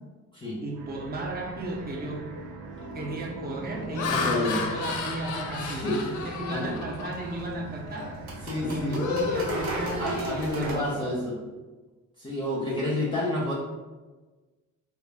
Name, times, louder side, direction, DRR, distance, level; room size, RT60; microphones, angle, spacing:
voice 1, 0.6-2.3 2.9-8.2 8.6-10.9, right 2 dB, 30° right, 0 dB, 0.6 m, -35 dB
sound 1, 0.7-11.3, right 2 dB, 85° right, 0.5 m, -41 dB
Laughter, 1.8-2.1 2.7-3.0 3.6-7.4 7.9-8.1 8.5-10.4, left 5 dB, 80° left, 0.5 m, -33 dB
voice 2, 4.1-4.6 5.6-6.8 7.7-7.8 8.4-9.0 10.0-11.4 12.2-13.5, left 1 dB, 15° left, -6 dB, 0.6 m, -30 dB
sound 2, 5.5-10.7, right 2 dB, 70° right, 0.9 m, -37 dB
2.2 x 2.1 x 3.3 m, 1.3 s
cardioid pair, 90°, 30 cm